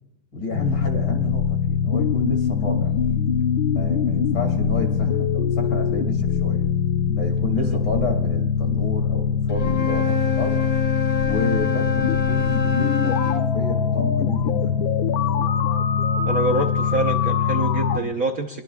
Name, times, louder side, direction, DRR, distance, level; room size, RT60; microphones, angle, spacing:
voice 1, 0.3-2.9 3.7-6.7 7.1-10.6 11.2-14.7, left 2 dB, 50° left, 2 dB, 3.1 m, -30 dB
sound 1, 0.5-18.0, left 7 dB, 70° left, 1.6 m, -22 dB
Wind instrument woodwind instrument, 9.5-13.5, left 6 dB, 25° left, 1.7 m, -26 dB
voice 2, 16.3-18.6, right 2 dB, 50° right, 3 dB, 1.2 m, -26 dB
23.0 x 22.5 x 2.4 m, 0.89 s
omnidirectional pair, 2.3 m